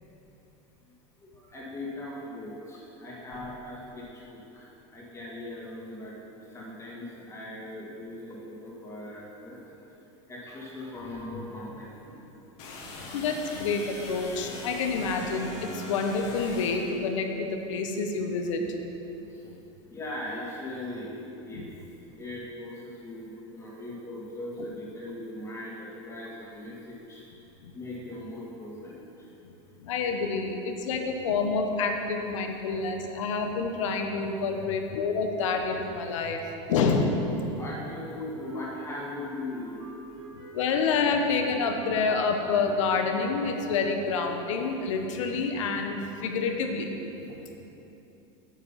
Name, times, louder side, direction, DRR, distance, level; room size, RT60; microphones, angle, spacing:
voice 1, 1.2-9.8 10.3-12.3 19.2-19.5 19.9-21.7 22.1-27.3 27.7-29.3 34.6-34.8 36.2-36.3 37.4-39.9 40.3-40.6 47.2-47.3, left 1 dB, 20° left, -6 dB, 2.1 m, -40 dB
sound 1, 12.6-17.0, left 2 dB, 50° left, 1.9 m, -41 dB
voice 2, 13.1-18.6 19.4-19.6 21.5-21.7 27.6-27.7 29.4-29.5 29.8-36.4 36.7-37.3 40.5-46.9 47.3-47.4, left 4 dB, 85° left, 4 dB, 1.1 m, -28 dB
Wind instrument woodwind instrument, 38.4-44.4, right 2 dB, 75° right, 2.4 m, -48 dB
8.2 x 8.1 x 5.8 m, 3.0 s
supercardioid pair, 135°, 16 cm